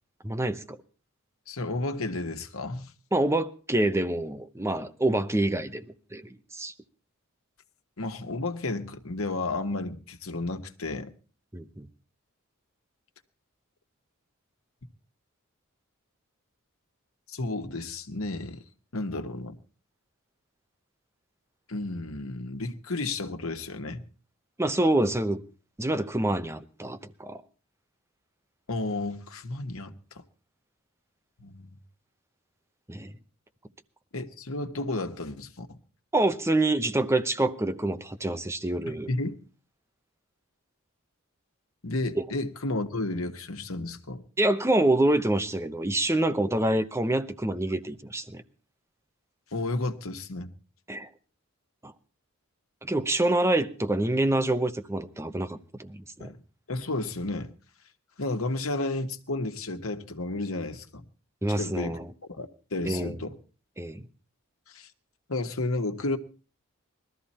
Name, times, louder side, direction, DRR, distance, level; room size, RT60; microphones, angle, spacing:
voice 1, 0.2-0.8 3.1-5.9 6.1-6.7 11.5-11.9 24.6-25.4 25.8-27.4 32.9-33.1 36.1-39.1 42.2-42.3 44.4-48.4 50.9-51.1 51.8-51.9 52.8-56.3 61.4-62.1 62.8-63.2 63.8-64.1, right 1 dB, 15° right, 0.8 m, -26 dB
voice 2, 1.5-2.9 8.0-11.1 17.3-18.6 18.9-19.6 21.7-24.0 28.7-30.2 31.4-31.7 34.1-35.8 38.9-39.4 41.8-44.2 49.5-50.5 56.2-56.4 56.7-57.5 58.2-61.1 61.5-62.0 62.3-63.4 64.7-64.9 65.3-66.2, left 2 dB, 80° left, 1.4 m, -32 dB
20.0 x 13.5 x 4.3 m
head